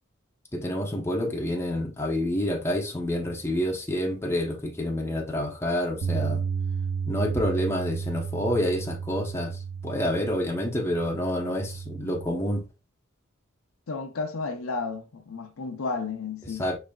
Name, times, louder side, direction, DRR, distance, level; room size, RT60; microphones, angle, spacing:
voice 1, 0.5-6.4 7.1-12.6 16.6-16.8, left 1 dB, 10° left, 0.9 m, -28 dB
Bass guitar, 6.0-12.3, right 6 dB, 85° right, 0.5 m, -32 dB
voice 2, 13.9-16.7, left 4 dB, 75° left, 0.7 m, -32 dB
5.0 x 3.3 x 2.3 m
head